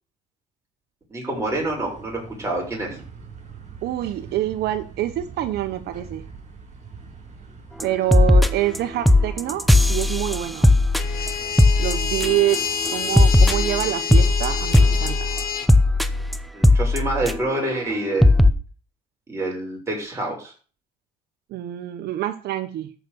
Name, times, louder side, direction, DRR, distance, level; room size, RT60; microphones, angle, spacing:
voice 1, 1.1-3.0 16.5-18.5 19.3-20.5, right 2 dB, 15° right, -2 dB, 7.0 m, -27 dB
sound 1, 1.3-13.9, right 5 dB, 45° right, 5.8 m, -43 dB
voice 2, 3.8-6.2 7.8-10.7 11.8-12.6 12.9-15.3 21.5-22.9, right 14 dB, 75° right, 8 dB, 1.0 m, -26 dB
sound 2, 7.8-7.9 8.1-8.8 9.1-12.6 12.9-17.6 17.9-18.0 18.2-18.5, left 2 dB, ahead, 0.9 m, -17 dB
sound 3, 11.0-15.7, left 7 dB, 65° left, 1.7 m, -28 dB
13.5 x 6.1 x 6.9 m, 0.39 s
cardioid pair, 110°, 17 cm